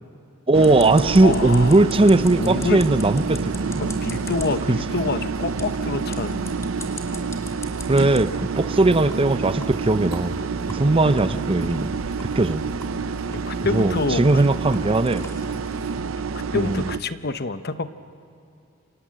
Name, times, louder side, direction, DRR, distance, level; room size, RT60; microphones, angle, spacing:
voice 1, 0.5-3.8 4.7-5.1 7.9-10.4 10.7-11.9 12.4-12.6 13.7-15.2 16.5-16.9, right 2 dB, 25° right, 13 dB, 0.6 m, -19 dB
sound 1, 0.5-17.0, right 5 dB, 90° right, 0.6 m, -28 dB
sound 2, 0.6-8.2 8.6-8.7 9.1-9.2 9.6-9.7 10.1-10.2 10.7-10.8 11.2-11.3 11.7-11.8 12.2-12.3 12.8-12.9 13.3-16.0, left 2 dB, 15° left, 2.7 m, -42 dB
voice 2, 1.1-1.8 2.4-2.8 3.8-6.5 13.3-14.2 16.5-17.9, left 3 dB, 55° left, 11 dB, 0.9 m, -27 dB
sound 3, 1.1-16.0, equal, 65° right, 5.2 m, -40 dB
28.5 x 26.0 x 7.6 m, 2.7 s
head